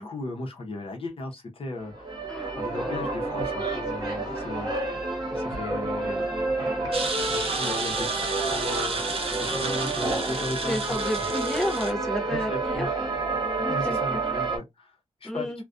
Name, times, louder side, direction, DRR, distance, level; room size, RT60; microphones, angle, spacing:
voice 1, 0.0-2.3 2.6-4.7 5.2-6.6 7.3-9.0 9.4-10.8 11.2-11.3 12.3-13.0 13.7-15.6, left 2 dB, 50° left, 0.7 m, -36 dB
sound 1, 1.8-14.6, right 3 dB, 35° right, 1.0 m, -29 dB
voice 2, 2.3-3.1 10.7-12.9 13.6-14.2 15.2-15.6, left 1 dB, 5° left, 0.5 m, -32 dB
sound 2, 6.9-11.9, right 3 dB, 50° right, 0.6 m, -32 dB
2.4 x 2.1 x 2.4 m
wide cardioid pair, 140°, 12 cm